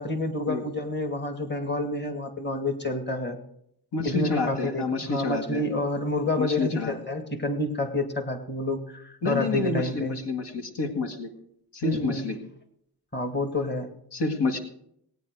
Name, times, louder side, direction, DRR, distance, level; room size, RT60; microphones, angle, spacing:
voice 1, 0.0-3.4 4.0-10.2 11.8-12.3 13.1-13.9, left 1 dB, 25° left, 6 dB, 2.1 m, -29 dB
voice 2, 3.9-5.6 6.4-6.9 9.2-11.3 11.7-12.4 14.1-14.6, left 4 dB, 75° left, 4 dB, 2.0 m, -28 dB
19.5 x 9.5 x 4.7 m, 0.72 s
cardioid pair, 85°, 42 cm